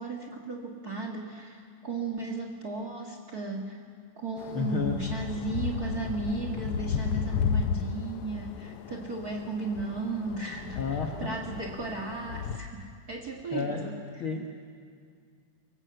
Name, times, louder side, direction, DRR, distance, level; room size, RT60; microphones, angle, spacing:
voice 1, 0.0-3.8 4.2-10.8 11.2-14.0, right 3 dB, 35° right, 3 dB, 1.6 m, -35 dB
sound 1, 4.4-12.6, left 7 dB, 70° left, 1.4 m, -34 dB
voice 2, 4.5-5.1 10.7-11.4 13.5-13.9 14.2-14.5, left 5 dB, 55° left, 2 dB, 1.6 m, -31 dB
23.5 x 19.5 x 7.9 m, 2.1 s
omnidirectional pair, 3.7 m